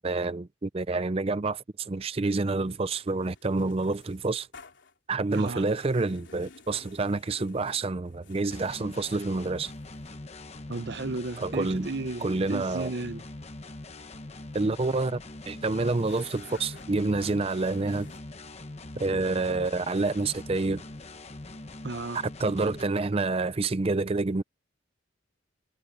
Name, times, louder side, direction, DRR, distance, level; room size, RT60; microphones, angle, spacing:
voice 1, 0.0-4.5 5.1-9.7 11.4-11.9 12.2-12.9 14.5-15.2 15.5-18.1 19.0-20.8 22.1-24.4, right 3 dB, 30° right, 0.4 m, -28 dB
sound 1, 2.0-8.8 9.3-10.3 11.3-18.2, left 4 dB, 60° left, 3.5 m, -55 dB
voice 2, 5.3-5.6 10.7-13.2 15.8-15.9 21.8-22.2, right 3 dB, 50° right, 0.7 m, -34 dB
sound 2, 8.5-22.8, left 2 dB, 30° left, 1.0 m, -43 dB
head